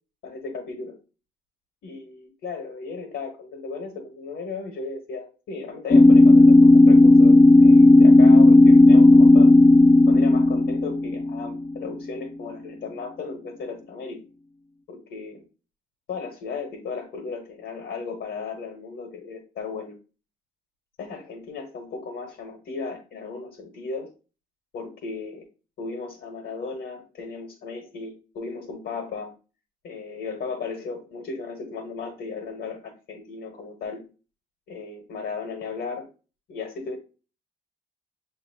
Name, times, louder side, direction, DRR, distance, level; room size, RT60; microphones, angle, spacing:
voice 1, 0.2-1.0 1.8-9.5 9.9-14.2 14.9-15.4 16.1-20.0 21.0-24.1 24.7-25.5 25.8-29.3 29.8-34.0 34.7-36.1 36.5-37.0, left 4 dB, 70° left, 2 dB, 1.2 m, -35 dB
sound 1, 5.9-11.7, left 2 dB, 30° left, 0.4 m, -13 dB
6.4 x 2.8 x 2.8 m, 0.33 s
cardioid pair, 90°, 20 cm